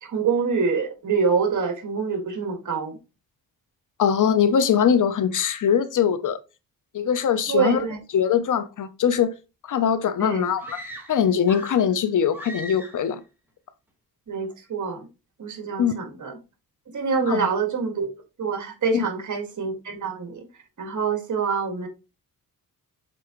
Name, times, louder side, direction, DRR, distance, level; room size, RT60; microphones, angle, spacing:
voice 1, 0.0-3.0 7.5-8.0 10.2-10.4 14.3-15.1 15.4-16.3 16.9-18.1 18.4-20.4 20.8-21.9, right 5 dB, 55° right, 2.0 m, -25 dB
voice 2, 4.0-6.4 6.9-7.8 8.1-9.3 9.6-10.8 11.1-13.2 15.8-16.0 17.2-17.5 18.9-19.1, left 8 dB, 60° left, 0.7 m, -22 dB
sound 1, 10.6-11.9 12.3-13.1, equal, 5° right, 1.9 m, -39 dB
6.8 x 4.6 x 3.0 m
cardioid pair, 100°, 36 cm